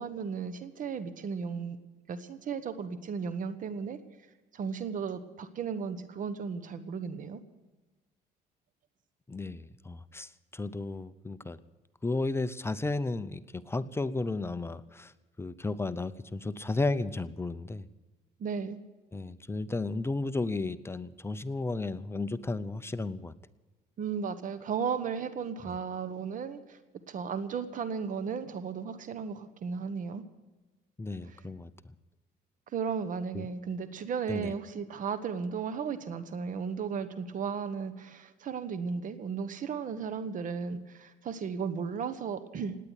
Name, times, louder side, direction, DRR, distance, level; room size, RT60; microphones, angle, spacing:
voice 1, 0.0-1.8 2.1-4.0 4.5-7.4 18.4-18.8 24.0-26.8 27.1-30.2 31.2-31.4 32.7-42.8, right 6 dB, 50° right, 12 dB, 1.2 m, -35 dB
voice 2, 9.3-11.6 12.0-15.1 15.4-17.9 19.1-23.3 31.0-31.7 33.3-33.5 34.3-34.5, left 3 dB, 15° left, 13 dB, 0.7 m, -33 dB
18.0 x 9.8 x 8.2 m, 1.2 s
cardioid pair, 110°, 17 cm